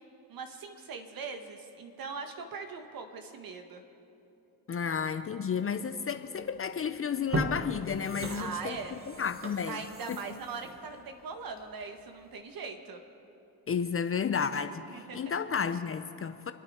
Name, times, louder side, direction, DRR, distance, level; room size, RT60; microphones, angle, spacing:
voice 1, 0.3-3.8 8.3-8.9 9.7-13.0 14.9-15.2, right 5 dB, 50° right, 6 dB, 1.7 m, -40 dB
voice 2, 4.7-8.8 9.2-9.8 10.1-10.2 13.7-16.5, left 6 dB, 30° left, 10 dB, 0.6 m, -32 dB
sound 1, 6.5-6.7 7.1-11.8 12.2-12.3, right 1 dB, 30° right, 1.6 m, -38 dB
27.5 x 9.4 x 4.4 m, 2.9 s
supercardioid pair, 75°, 46 cm